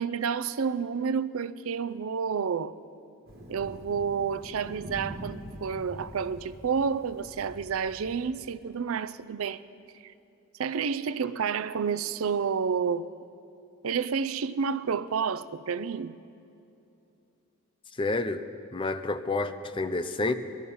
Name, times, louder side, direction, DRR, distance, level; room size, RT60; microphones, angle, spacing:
voice 1, 0.0-2.8 3.5-9.6 10.0-10.1 10.6-13.1 13.8-16.1, right 6 dB, 85° right, 0.5 m, -30 dB
Thunder, 3.3-8.3, equal, 50° right, 2.1 m, -44 dB
voice 2, 18.0-18.4 18.7-20.3, left 2 dB, 25° left, 0.5 m, -29 dB
20.0 x 12.5 x 5.5 m
head